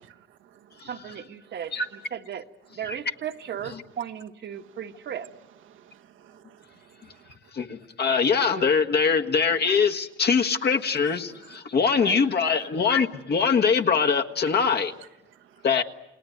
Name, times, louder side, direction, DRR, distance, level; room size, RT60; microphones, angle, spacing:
voice 1, 0.3-0.8 1.4-1.6 4.5-4.8 5.7-7.4 11.1-11.6 12.1-12.2 14.5-15.7, right 10 dB, 85° right, 1.3 m, -54 dB
voice 2, 0.8-2.4 2.7-5.3 8.6-8.7 12.0-12.3, right 9 dB, 60° right, 1.4 m, -36 dB
voice 3, 7.5-14.9 15.6-15.8, left 5 dB, 55° left, 1.7 m, -23 dB
29.5 x 19.5 x 9.3 m
cardioid pair, 90°, 20 cm